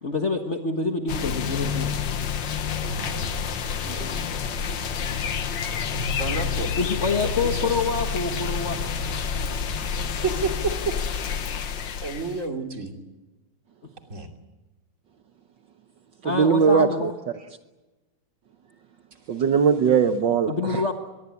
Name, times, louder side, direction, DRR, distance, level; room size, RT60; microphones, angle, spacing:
voice 1, 0.0-1.9 3.8-4.3 6.8-8.8 9.0-9.1 16.2-17.2 19.8-20.0 20.5-20.9, left 4 dB, 35° left, 5 dB, 1.6 m, -27 dB
sound 1, 1.1-12.5, left 6 dB, 60° left, 1.9 m, -29 dB
voice 2, 2.8-3.4 5.9-6.7 7.2-7.7 10.2-11.0 12.0-13.0 14.1-14.3, right 3 dB, 35° right, 4 dB, 3.2 m, -30 dB
voice 3, 16.2-17.1 19.3-20.8, right 6 dB, 60° right, 8 dB, 1.6 m, -20 dB
24.5 x 21.5 x 8.3 m, 1.1 s
omnidirectional pair, 2.4 m